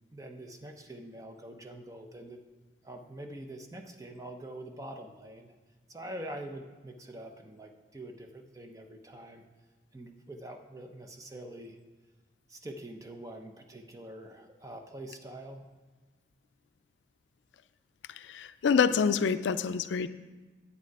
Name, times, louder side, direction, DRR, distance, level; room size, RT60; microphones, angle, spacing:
voice 1, 0.1-2.4 2.8-5.5 5.9-9.4 9.9-11.8 12.5-15.7, right 1 dB, 20° right, 4 dB, 0.7 m, -45 dB
voice 2, 18.3-20.1, left 6 dB, 85° left, 13 dB, 0.4 m, -26 dB
9.1 x 8.4 x 4.7 m, 1.3 s
head